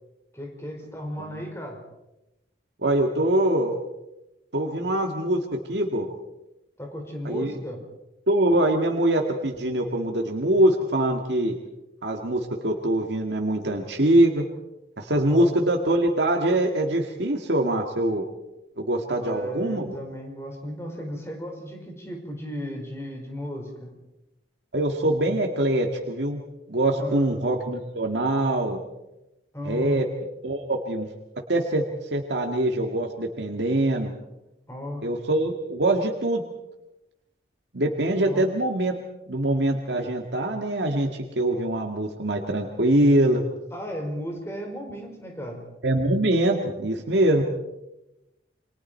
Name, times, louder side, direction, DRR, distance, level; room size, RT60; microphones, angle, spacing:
voice 1, 0.3-1.8 6.8-7.8 15.3-15.5 19.1-23.9 27.0-27.3 29.5-30.0 34.7-35.1 38.2-38.5 43.7-45.6, equal, 15° left, 2 dB, 4.8 m, -35 dB
voice 2, 2.8-3.8 4.5-5.4 5.7-6.1 7.2-7.5 8.3-11.6 12.0-14.4 15.0-18.3 18.8-20.0 24.7-26.4 26.7-28.8 29.7-30.1 30.4-31.1 31.5-31.8 32.1-34.1 35.0-36.4 37.7-38.9 39.3-41.1 41.4-43.4 45.8-47.4, right 1 dB, 80° right, 2 dB, 1.9 m, -23 dB
28.5 x 25.0 x 4.5 m, 0.95 s
head